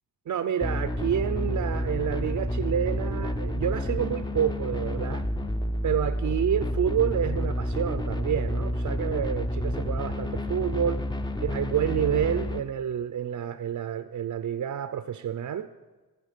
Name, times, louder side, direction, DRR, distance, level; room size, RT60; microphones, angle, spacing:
voice 1, 0.3-5.2 5.8-11.0 11.4-15.7, right 9 dB, 55° right, 10 dB, 0.5 m, -29 dB
sound 1, 0.6-12.6, equal, 10° left, 0.5 m, -29 dB
14.0 x 4.7 x 6.5 m, 1.2 s
cardioid pair, 80°, 38 cm